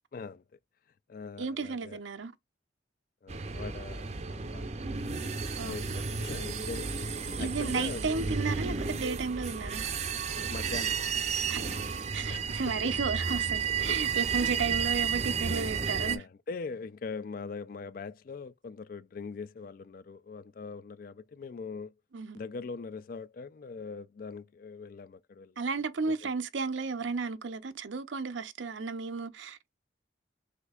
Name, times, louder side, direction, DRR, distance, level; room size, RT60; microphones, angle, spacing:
voice 1, 0.1-0.4 1.1-2.0 3.2-4.7 5.6-7.0 7.4-8.0 10.5-11.0 12.3-12.6 13.9-14.0 16.0-21.9 22.3-25.5, left 4 dB, 50° left, 0.3 m, -41 dB
voice 2, 1.4-2.3 5.5-5.8 7.4-9.9 11.5-11.6 12.1-16.2 22.1-22.4 25.6-29.7, right 4 dB, 80° right, 0.6 m, -33 dB
sound 1, 3.3-16.2, right 5 dB, 35° right, 0.5 m, -32 dB
6.3 x 2.7 x 2.3 m
head